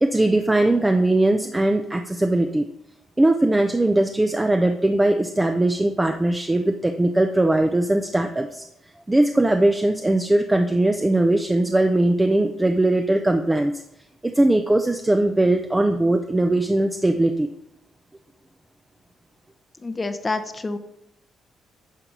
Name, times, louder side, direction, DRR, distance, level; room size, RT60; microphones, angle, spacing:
voice 1, 0.0-2.7 3.2-8.7 9.1-13.7 14.2-17.5, right 1 dB, 15° right, 6 dB, 0.6 m, -20 dB
voice 2, 19.8-20.8, left 3 dB, 25° left, 9 dB, 0.8 m, -27 dB
10.0 x 4.6 x 5.2 m, 0.79 s
cardioid pair, 90°, 0 cm